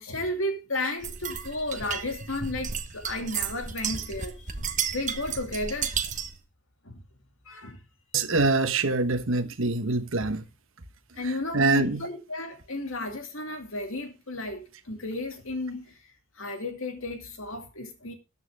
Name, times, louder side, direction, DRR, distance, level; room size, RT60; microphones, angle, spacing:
voice 1, 0.0-6.2 6.8-7.0 7.5-7.8 11.1-16.0 16.3-18.1, left 2 dB, 60° left, 2.5 m, -33 dB
sound 1, 1.0-6.4, right 7 dB, 35° right, 1.1 m, -33 dB
voice 2, 8.1-10.4 11.5-12.0, right 3 dB, 60° right, 1.3 m, -24 dB
13.5 x 8.8 x 3.6 m
head